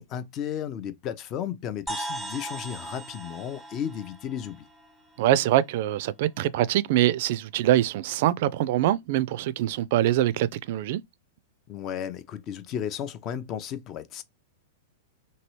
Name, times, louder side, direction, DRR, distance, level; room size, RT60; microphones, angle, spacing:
voice 1, 0.0-4.7 11.7-14.2, left 9 dB, 35° left, 0.5 m, -34 dB
sound 1, 1.9-5.6, right 2 dB, ahead, 0.9 m, -38 dB
voice 2, 5.2-11.0, right 13 dB, 55° right, 0.3 m, -24 dB
2.9 x 2.7 x 3.0 m
hypercardioid pair, 105°, 0 cm